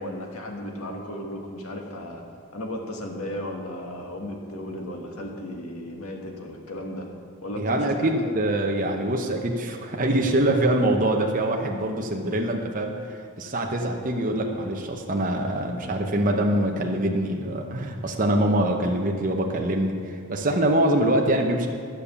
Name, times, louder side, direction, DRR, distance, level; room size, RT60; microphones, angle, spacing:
voice 1, 0.0-2.2 2.5-7.1 7.4-8.3 13.4-13.6, left 1 dB, 80° left, 1 dB, 1.7 m, -35 dB
voice 2, 7.6-21.7, right 1 dB, 35° right, 1 dB, 0.9 m, -24 dB
12.5 x 6.9 x 7.0 m, 2.1 s
head